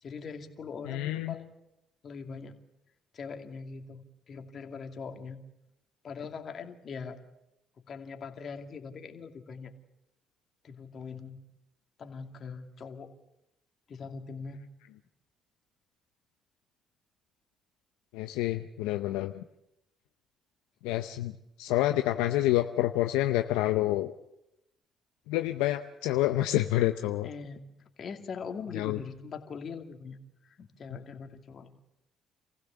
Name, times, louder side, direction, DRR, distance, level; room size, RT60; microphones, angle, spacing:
voice 1, 0.0-1.5 2.0-2.6 3.1-5.4 6.0-7.2 7.8-9.7 10.6-11.4 12.0-13.1 13.9-14.6 27.2-27.7 28.0-30.2 30.4-31.8, left 5 dB, 55° left, 5 dB, 2.5 m, -41 dB
voice 2, 0.9-1.3 18.1-19.4 20.8-21.3 21.6-24.1 25.3-27.3 28.7-29.0, left 15 dB, 90° left, 7 dB, 0.7 m, -28 dB
27.5 x 15.5 x 7.1 m, 0.88 s
supercardioid pair, 60°, 0 cm